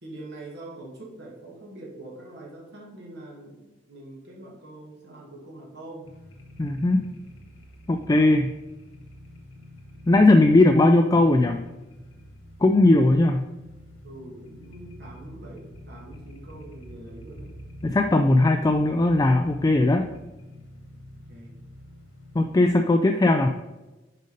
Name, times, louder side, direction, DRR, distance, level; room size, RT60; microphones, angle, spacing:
voice 1, 0.0-6.1 14.0-17.6 21.3-21.6, right 2 dB, 60° right, -3 dB, 2.1 m, -43 dB
sound 1, 6.0-22.6, equal, 85° left, 1.6 m, -46 dB
voice 2, 6.6-7.0 7.9-8.5 10.1-11.6 12.6-13.4 17.8-20.0 22.3-23.5, left 2 dB, 20° left, 5 dB, 0.3 m, -18 dB
6.6 x 5.1 x 5.2 m, 1.1 s
head